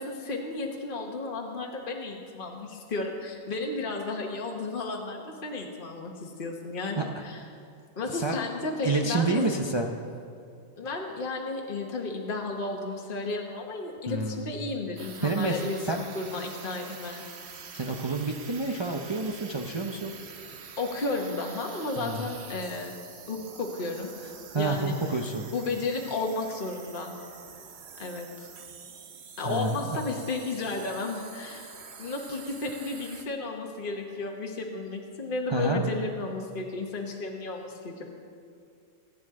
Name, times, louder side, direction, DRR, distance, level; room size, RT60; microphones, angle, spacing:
voice 1, 0.0-7.4 8.0-9.4 10.8-17.2 20.8-22.9 23.3-24.1 24.5-24.9 25.5-27.2 28.0-28.5 29.4-38.0, left 3 dB, 50° left, 1 dB, 1.3 m, -33 dB
voice 2, 8.1-8.4 8.8-10.0 14.1-14.5 15.2-15.6 15.9-16.0 16.3-16.4 17.7-20.1 22.0-22.3 24.5-25.5 29.4-30.0 35.5-35.8, right 3 dB, 30° right, 1 dB, 0.6 m, -29 dB
sound 1, 15.0-33.3, right 6 dB, 65° right, 1.1 m, -46 dB
24.0 x 9.6 x 3.7 m, 2.4 s
omnidirectional pair, 1.2 m